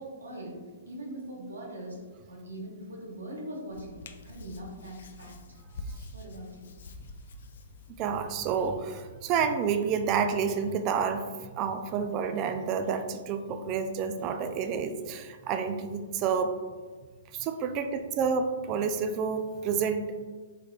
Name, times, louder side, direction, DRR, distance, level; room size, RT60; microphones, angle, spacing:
voice 1, 0.0-5.4 6.1-6.7, right 1 dB, 90° right, -2 dB, 0.9 m, -41 dB
Hands, 3.7-8.7, left 2 dB, 65° left, 0.3 m, -46 dB
voice 2, 8.0-16.6 17.3-20.3, right 6 dB, 35° right, 8 dB, 0.3 m, -29 dB
3.6 x 3.2 x 2.3 m, 1.4 s
hypercardioid pair, 130°, 0 cm